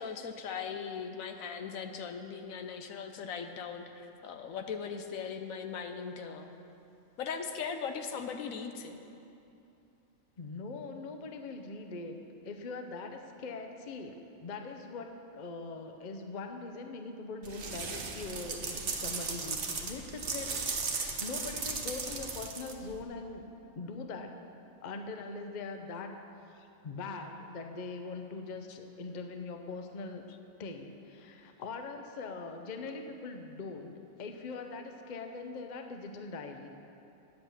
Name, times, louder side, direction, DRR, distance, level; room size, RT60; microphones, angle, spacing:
voice 1, 0.0-6.6 7.2-8.9 28.7-28.8, left 6 dB, 75° left, 6 dB, 1.1 m, -39 dB
voice 2, 10.4-20.6 20.9-23.4 23.7-24.4 24.8-26.2 26.5-30.2 30.6-33.9 34.2-36.7, left 3 dB, 40° left, 5 dB, 0.7 m, -42 dB
sound 1, 17.4-23.0, right 4 dB, 55° right, 1.2 m, -36 dB
10.0 x 7.9 x 7.1 m, 2.8 s
omnidirectional pair, 1.5 m